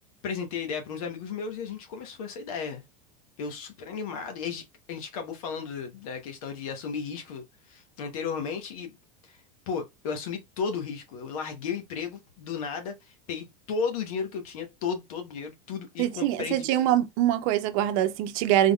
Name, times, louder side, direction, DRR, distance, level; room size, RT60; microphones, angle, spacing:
voice 1, 0.2-2.8 3.4-9.0 9.2-9.4 9.7-16.7, left 6 dB, 80° left, 1.0 m, -34 dB
voice 2, 16.0-18.7, right 12 dB, 65° right, 0.7 m, -24 dB
3.6 x 3.5 x 2.3 m
supercardioid pair, 125°, 18 cm